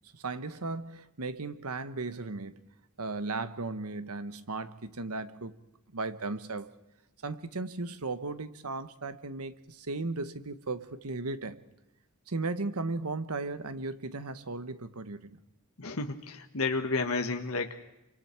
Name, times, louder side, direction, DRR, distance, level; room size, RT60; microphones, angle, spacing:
voice 1, 0.1-2.6 3.0-5.6 5.9-6.7 7.2-11.6 12.3-15.4, right 3 dB, 90° right, 1.2 m, -36 dB
voice 2, 15.8-17.8, left 3 dB, 75° left, 1.5 m, -31 dB
28.0 x 25.5 x 4.6 m
head